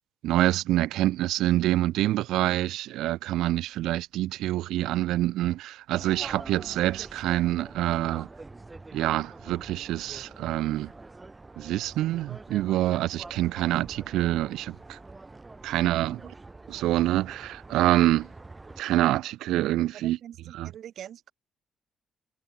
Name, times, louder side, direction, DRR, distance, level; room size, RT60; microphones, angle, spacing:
voice 1, 0.2-8.3 8.9-10.9 11.6-15.0 15.6-16.2 16.7-18.3 18.8-20.2 20.5-20.7, right 15 dB, 90° right, 0.3 m, -26 dB
sound 1, 5.9-18.8, right 3 dB, 20° right, 5.3 m, -45 dB
voice 2, 19.9-21.3, right 10 dB, 70° right, 1.9 m, -44 dB
cardioid pair, 90°, 0 cm